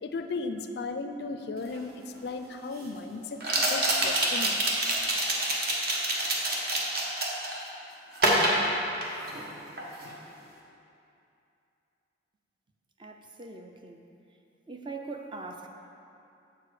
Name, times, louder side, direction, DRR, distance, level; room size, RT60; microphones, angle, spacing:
voice 1, 0.0-4.6, left 3 dB, 55° left, 8 dB, 0.4 m, -36 dB
sound 1, 1.7-1.8 3.4-7.6 8.2-9.5 9.8-10.1, right 1 dB, 50° right, 1.1 m, -26 dB
voice 2, 13.0-14.0 14.7-15.7, right 3 dB, 25° right, 3 dB, 0.5 m, -41 dB
7.5 x 6.8 x 4.8 m, 2.7 s
head